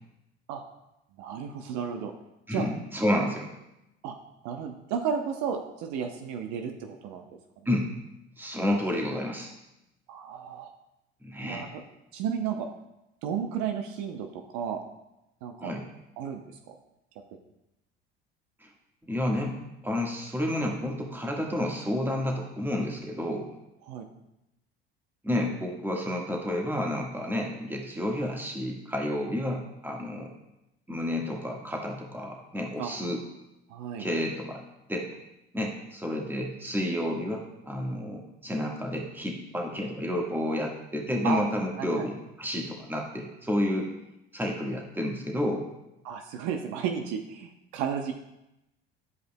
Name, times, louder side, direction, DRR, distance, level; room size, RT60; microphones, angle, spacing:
voice 1, 1.2-2.1 2.5-2.7 3.2-3.3 4.0-4.1 4.4-7.2 10.1-10.7 11.4-11.8 12.1-12.7 13.2-14.8 15.4-15.7 16.2-16.7 23.8-24.1 32.8-32.9 33.7-34.1 41.2-41.4 41.8-42.0 46.0-48.1, right 7 dB, 65° right, 5 dB, 0.8 m, -33 dB
voice 2, 2.5-3.4 7.6-7.9 8.4-9.5 11.2-11.6 15.6-15.8 18.6-18.7 19.1-23.5 25.2-30.3 30.9-33.2 34.0-34.6 34.9-35.1 35.5-43.9 44.3-45.7, left 1 dB, 5° right, 0 dB, 1.5 m, -30 dB
11.0 x 5.1 x 2.2 m, 0.89 s
hypercardioid pair, 65°, 31 cm